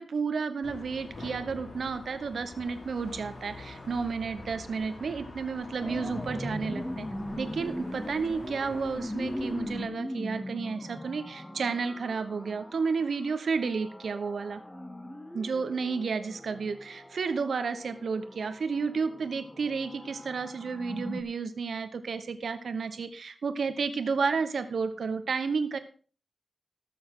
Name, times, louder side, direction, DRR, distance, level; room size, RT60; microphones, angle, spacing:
voice 1, 0.0-7.1 7.4-14.6 15.3-25.8, right 5 dB, 90° right, 10 dB, 1.1 m, -31 dB
sound 1, 0.6-9.9, left 2 dB, 75° left, 6.0 m, -45 dB
sound 2, 5.8-21.2, left 1 dB, 10° left, 0.9 m, -40 dB
19.0 x 7.0 x 3.8 m, 0.40 s
wide cardioid pair, 135°, 0 cm